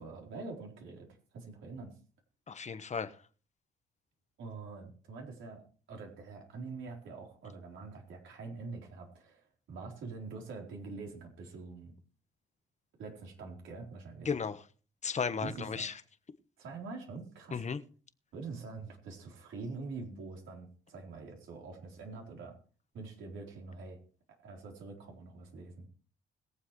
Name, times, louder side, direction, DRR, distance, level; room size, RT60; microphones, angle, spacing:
voice 1, 0.0-1.9 4.4-5.6 5.9-11.9 13.0-14.3 15.4-15.8 16.6-17.6 18.3-22.6 22.9-24.0 24.4-25.9, right 4 dB, 75° right, 3.9 m, -45 dB
voice 2, 2.5-3.1 14.2-14.6 15.0-15.9 17.5-17.8, left 6 dB, 35° left, 1.2 m, -34 dB
21.5 x 7.5 x 3.2 m
cardioid pair, 90°, 20 cm